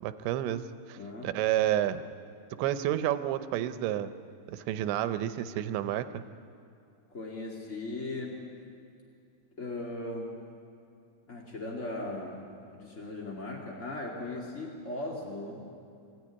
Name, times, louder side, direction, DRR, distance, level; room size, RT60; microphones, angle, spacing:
voice 1, 0.0-2.0 2.5-4.1 4.5-6.2, right 12 dB, 80° right, 11 dB, 3.0 m, -30 dB
voice 2, 1.0-1.3 7.1-8.4 9.6-10.3 11.3-12.4 12.7-15.7, left 2 dB, 35° left, -2 dB, 1.2 m, -38 dB
24.5 x 15.5 x 9.8 m, 2.6 s
omnidirectional pair, 5.3 m